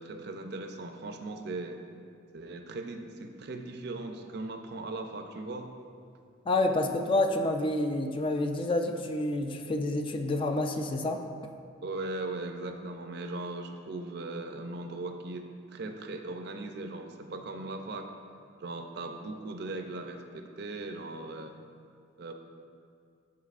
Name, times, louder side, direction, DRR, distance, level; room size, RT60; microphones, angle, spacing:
voice 1, 0.0-1.8 2.3-5.7 11.8-18.1 18.6-21.5 22.2-22.3, right 2 dB, 55° right, 5 dB, 0.5 m, -38 dB
voice 2, 6.5-11.2, left 2 dB, 25° left, 5 dB, 0.3 m, -28 dB
11.5 x 4.7 x 2.5 m, 2.3 s
head